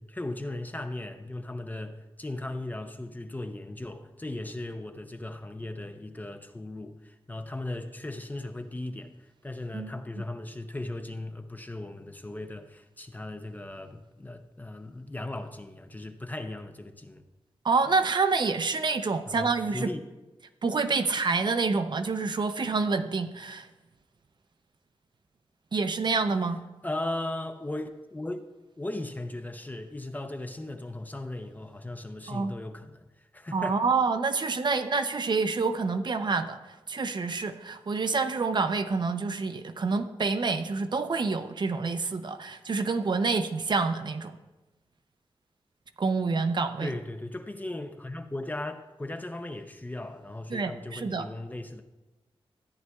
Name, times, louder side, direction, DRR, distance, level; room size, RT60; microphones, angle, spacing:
voice 1, 0.0-17.2 19.3-20.0 26.8-28.5 28.8-33.8 46.8-51.8, left 2 dB, 15° left, 0.5 m, -37 dB
voice 2, 17.6-19.9 20.6-23.7 25.7-26.6 32.3-32.5 33.5-36.6 36.9-44.4 46.0-46.9 50.5-51.3, right 4 dB, 50° right, 0.5 m, -27 dB
13.5 x 9.3 x 2.3 m
wide cardioid pair, 125°, 10 cm